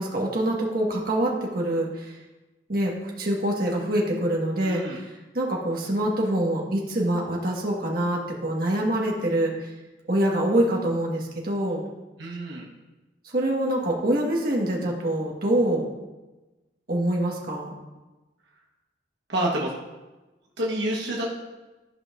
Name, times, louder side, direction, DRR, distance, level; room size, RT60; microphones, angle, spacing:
voice 1, 0.0-2.1 2.7-5.1 5.3-9.5 10.1-11.8 13.2-15.9 16.9-17.7, right 1 dB, 55° right, -2 dB, 1.4 m, -25 dB
voice 2, 4.6-5.0 12.2-12.6 19.3-19.7 20.6-21.3, right 1 dB, 80° right, -3 dB, 1.1 m, -28 dB
13.5 x 5.5 x 2.4 m, 1.1 s
head